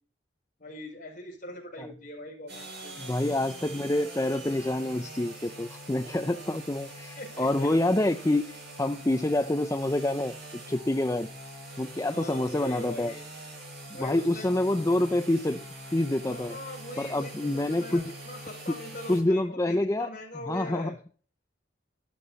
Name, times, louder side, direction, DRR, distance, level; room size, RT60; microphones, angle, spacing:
voice 1, 0.6-3.1 7.2-7.7 12.1-13.3 13.9-14.6 16.2-21.0, left 1 dB, 40° left, -1 dB, 5.4 m, -41 dB
sound 1, 2.5-19.2, right 1 dB, 55° right, 6.8 m, -44 dB
voice 2, 3.0-10.3 10.7-11.3 11.8-13.1 13.9-15.6 15.9-16.6 17.0-18.2 18.7-18.8 19.1-20.2 20.4-20.9, left 1 dB, 15° left, 8 dB, 0.4 m, -27 dB
12.5 x 11.5 x 4.1 m, 0.42 s
head